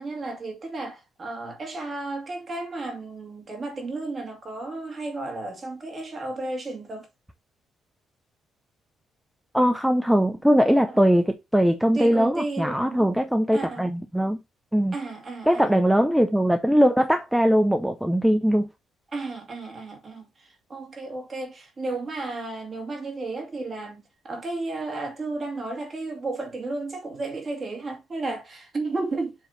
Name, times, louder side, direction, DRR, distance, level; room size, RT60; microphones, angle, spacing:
voice 1, 0.0-7.1 11.9-13.1 13.5-13.9 14.9-15.9 19.1-20.3 20.7-29.3, right 2 dB, 30° right, 2.3 m, -33 dB
voice 2, 9.5-14.4 14.7-15.0 15.5-18.7, equal, 5° right, 0.7 m, -21 dB
7.4 x 3.2 x 5.3 m
cardioid pair, 125°, 0 cm